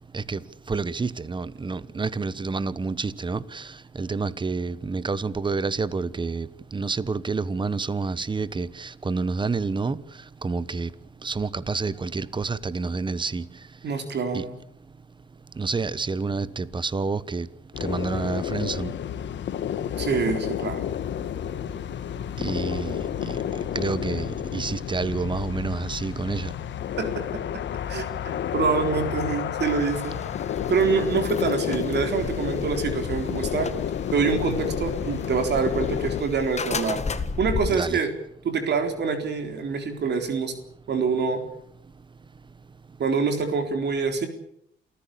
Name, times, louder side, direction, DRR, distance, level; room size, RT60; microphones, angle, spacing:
voice 1, 0.7-3.7 4.0-10.0 10.4-10.9 11.2-13.5 14.3-14.4 15.6-17.5 17.8-18.9 22.4-23.0 23.2-23.4 23.7-26.5 37.7-38.0, right 4 dB, 25° right, 1.2 m, -28 dB
voice 2, 13.8-14.6 20.0-20.9 27.0-27.2 27.9-30.2 30.7-33.7 34.1-37.0 37.4-38.1 38.4-40.5 40.9-41.4 43.0-44.3, right 5 dB, 60° right, 3.9 m, -25 dB
sound 1, 17.7-36.2, left 9 dB, 65° left, 1.6 m, -30 dB
sound 2, 29.6-37.8, left 5 dB, 35° left, 1.7 m, -34 dB
28.0 x 15.0 x 8.6 m
cardioid pair, 90°, 20 cm